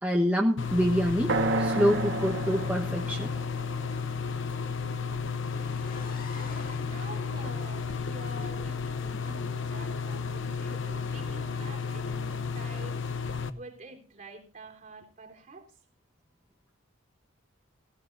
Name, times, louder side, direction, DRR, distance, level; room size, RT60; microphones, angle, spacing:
voice 1, 0.0-3.3, equal, 5° right, 1.2 m, -26 dB
sound 1, 0.6-13.5, left 5 dB, 65° left, 0.9 m, -33 dB
sound 2, 1.3-5.2, right 2 dB, 60° right, 1.5 m, -32 dB
sound 3, 5.5-9.3, left 3 dB, 45° left, 1.9 m, -49 dB
voice 2, 6.3-15.7, right 2 dB, 40° right, 3.5 m, -47 dB
16.5 x 16.0 x 2.6 m
head